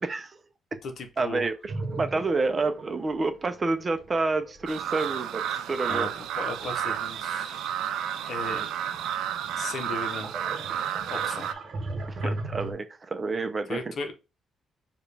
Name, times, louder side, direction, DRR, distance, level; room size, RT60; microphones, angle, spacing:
voice 1, 0.0-0.4 1.2-5.4 5.7-6.1 12.1-13.8, right 3 dB, 30° right, 0.6 m, -29 dB
voice 2, 0.8-1.5 5.9-6.1 6.3-7.7 8.3-8.7 9.6-10.3 11.1-11.5 12.2-12.3 13.7-14.1, left 3 dB, 60° left, 0.8 m, -36 dB
sound 1, 1.7-7.6 8.1-12.7, right 2 dB, 55° right, 0.9 m, -39 dB
sound 2, 4.7-11.5, right 10 dB, 85° right, 0.3 m, -31 dB
4.9 x 2.4 x 3.3 m
cardioid pair, 90°, 0 cm